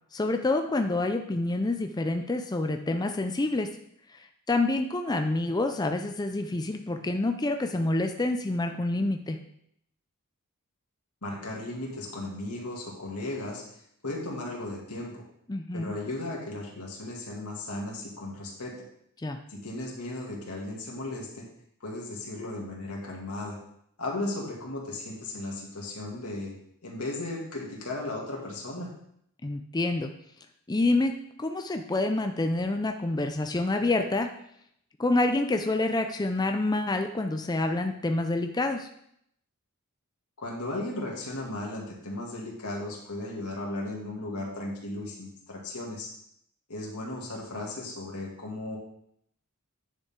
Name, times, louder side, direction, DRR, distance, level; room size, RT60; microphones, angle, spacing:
voice 1, 0.1-3.7 4.1-4.2 4.5-9.4 15.5-15.9 19.2-19.4 29.4-30.1 30.7-34.3 35.0-38.9, left 2 dB, 20° left, 5 dB, 0.5 m, -27 dB
voice 2, 11.2-13.6 14.0-15.2 15.7-18.8 19.5-21.4 21.8-23.6 24.0-26.5 26.8-28.9 40.4-46.1 46.7-48.8, left 2 dB, 90° left, -2 dB, 2.4 m, -36 dB
9.9 x 6.7 x 3.7 m, 0.72 s
head